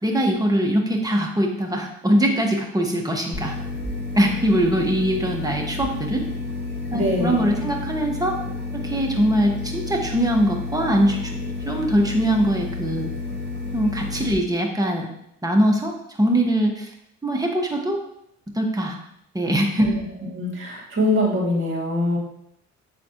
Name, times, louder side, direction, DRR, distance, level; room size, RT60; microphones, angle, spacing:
voice 1, 0.0-3.6 4.1-6.3 6.9-8.4 8.7-13.1 13.7-15.1 15.4-16.9 17.2-18.0 18.5-19.0 19.3-19.9, equal, 10° right, 1 dB, 1.3 m, -22 dB
sound 1, 3.3-14.3, left 3 dB, 35° left, 1.9 m, -31 dB
voice 2, 6.9-7.6 19.8-20.0 20.3-22.2, left 1 dB, 40° right, -5 dB, 2.4 m, -23 dB
7.7 x 4.1 x 3.0 m, 0.76 s
cardioid pair, 90°, 30 cm